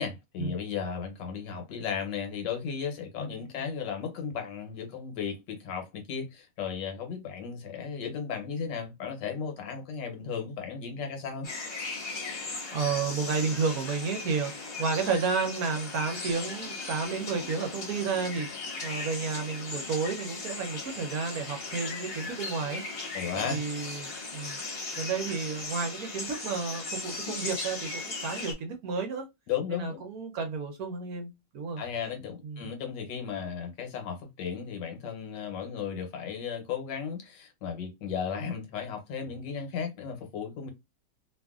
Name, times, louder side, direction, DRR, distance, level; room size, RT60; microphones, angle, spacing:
voice 1, 0.0-11.5 23.1-23.6 29.5-30.0 31.8-40.7, left 6 dB, 85° left, 1.5 m, -35 dB
sound 1, 11.4-28.5, left 3 dB, 45° left, 1.0 m, -37 dB
voice 2, 12.7-18.5 18.8-22.8 23.3-24.6 25.0-29.3 29.7-31.8 32.4-32.7, right 5 dB, 65° right, 1.1 m, -31 dB
2.9 x 2.5 x 2.3 m
omnidirectional pair, 1.9 m